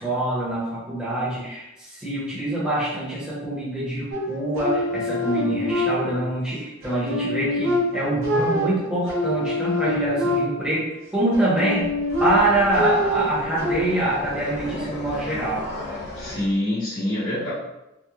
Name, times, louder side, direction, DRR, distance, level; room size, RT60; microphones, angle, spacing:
voice 1, 0.0-10.8 11.1-11.9 12.2-15.6, right 1 dB, 5° right, -9 dB, 0.8 m, -25 dB
sound 1, 4.1-6.4 6.8-10.8 11.3-13.8, left 1 dB, 80° right, 0.6 m, -25 dB
sound 2, 11.8-16.5, left 1 dB, 55° left, 0.9 m, -35 dB
voice 2, 16.2-17.5, left 1 dB, 75° left, -9 dB, 1.3 m, -25 dB
3.0 x 2.1 x 2.3 m, 0.92 s
head